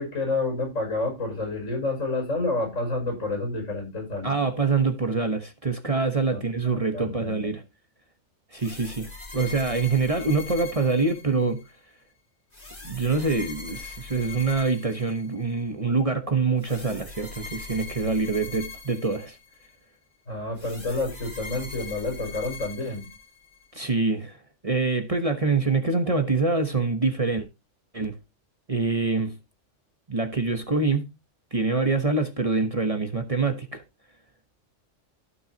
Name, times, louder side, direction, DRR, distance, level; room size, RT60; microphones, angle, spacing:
voice 1, 0.0-4.4 6.3-6.4 6.9-7.5 20.3-23.1, left 2 dB, 85° left, 6.2 m, -29 dB
voice 2, 4.2-7.6 8.5-11.6 12.8-19.4 23.7-24.4 24.6-27.5 27.9-28.1 28.7-29.3 30.1-31.1 31.5-33.8, right 4 dB, 30° right, 1.1 m, -25 dB
sound 1, 8.5-11.7 12.5-15.6 16.6-19.7 20.6-23.7, left 4 dB, 45° left, 3.0 m, -41 dB
15.5 x 6.3 x 2.8 m
omnidirectional pair, 1.3 m